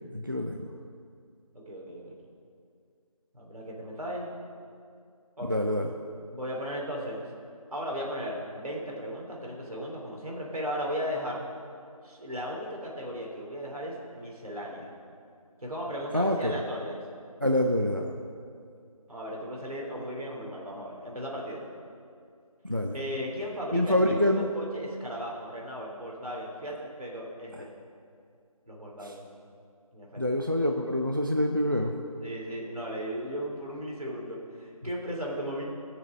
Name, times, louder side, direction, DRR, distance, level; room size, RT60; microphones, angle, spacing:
voice 1, 0.1-0.7 5.5-5.9 16.1-16.6 17.4-18.2 22.6-23.0 23.7-24.4 29.0-29.1 30.2-32.0, left 1 dB, 35° right, 3 dB, 0.4 m, -26 dB
voice 2, 1.5-2.2 3.3-4.3 5.4-5.6 6.3-7.2 7.7-11.4 12.0-14.9 15.6-17.0 19.1-21.7 22.9-27.7 28.7-29.3 29.9-30.2 32.2-35.6, equal, 75° right, -2 dB, 3.1 m, -36 dB
16.5 x 6.8 x 5.3 m, 2.3 s
figure-of-eight pair, 180°, 19 cm